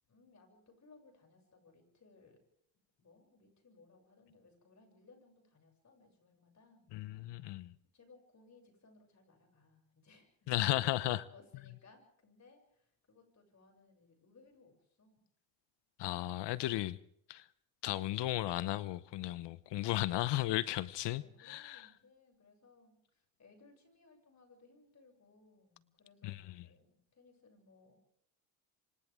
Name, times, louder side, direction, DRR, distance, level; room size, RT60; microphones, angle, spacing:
voice 1, 0.1-2.4 3.0-7.5 7.9-10.3 10.6-15.2 21.1-28.0, left 3 dB, 35° left, 7.6 m, -64 dB
voice 2, 6.9-7.7 10.5-11.2 16.0-17.0 17.3-17.4 17.8-21.8 26.2-26.4, left 16 dB, 60° left, 1.0 m, -35 dB
28.5 x 25.0 x 3.7 m
supercardioid pair, 80°, 48 cm